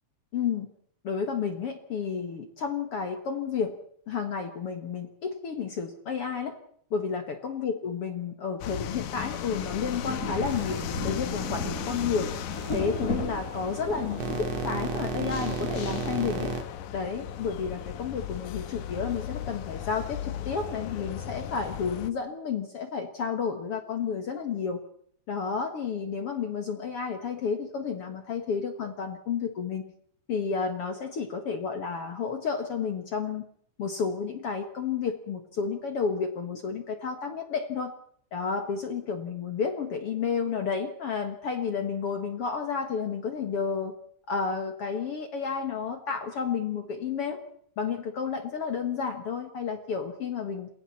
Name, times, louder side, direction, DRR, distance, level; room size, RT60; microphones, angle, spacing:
voice 1, 0.3-0.7 1.0-3.7 4.1-6.6 6.9-12.3 12.7-16.5 16.9-24.8 25.3-29.8 30.3-33.4 33.8-37.9 38.3-43.9 44.3-47.4 47.8-50.7, left 6 dB, 50° left, 5 dB, 2.4 m, -31 dB
sound 1, 8.6-22.1, left 10 dB, 80° left, 2.5 m, -37 dB
Rain, 9.3-16.4, left 1 dB, 25° left, 5.2 m, -36 dB
sound 2, 10.5-10.8 12.5-12.8 13.6-16.6, right 4 dB, 55° right, 3.1 m, -33 dB
28.5 x 22.0 x 4.3 m, 0.62 s
omnidirectional pair, 3.6 m